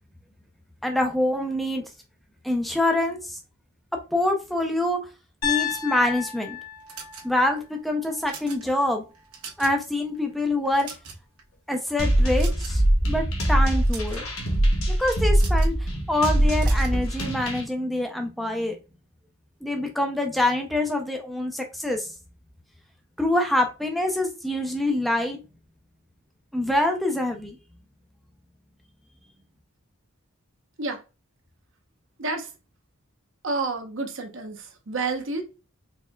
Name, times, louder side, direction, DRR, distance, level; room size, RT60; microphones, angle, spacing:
voice 1, 0.8-1.8 2.4-3.4 4.1-5.0 5.4-6.6 7.2-9.0 9.6-10.9 11.7-14.2 15.0-15.7 16.1-18.8 19.6-22.1 23.2-25.4 26.5-27.6, left 1 dB, ahead, 0.5 m, -25 dB
Piano, 5.4-9.5, left 9 dB, 90° left, 1.4 m, -33 dB
sound 1, 6.9-7.6 8.1-8.6 9.1-9.8 10.1-10.3 10.7-11.4 12.4-12.9 13.7-14.2 15.3-15.8 16.6-17.0, right 5 dB, 85° right, 1.1 m, -41 dB
sound 2, 12.0-17.6, right 1 dB, 65° left, 1.1 m, -22 dB
voice 2, 32.2-32.5 33.4-35.4, right 3 dB, 55° right, 0.8 m, -29 dB
4.3 x 3.4 x 2.2 m
head